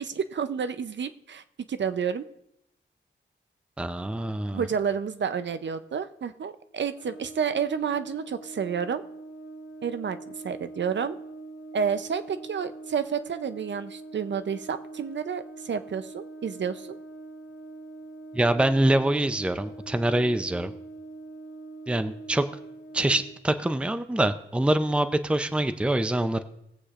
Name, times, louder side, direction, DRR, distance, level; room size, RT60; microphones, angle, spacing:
voice 1, 0.0-2.3 4.5-9.0 9.8-11.2 11.7-17.0, right 7 dB, 65° right, 11 dB, 0.6 m, -30 dB
voice 2, 3.8-4.7 18.3-20.7 21.9-22.4 22.9-26.4, right 1 dB, 5° right, 10 dB, 0.5 m, -25 dB
Brass instrument, 6.9-23.3, right 2 dB, 90° left, 2.0 m, -43 dB
20.5 x 8.3 x 2.5 m, 0.81 s
wide cardioid pair, 90°, 20 cm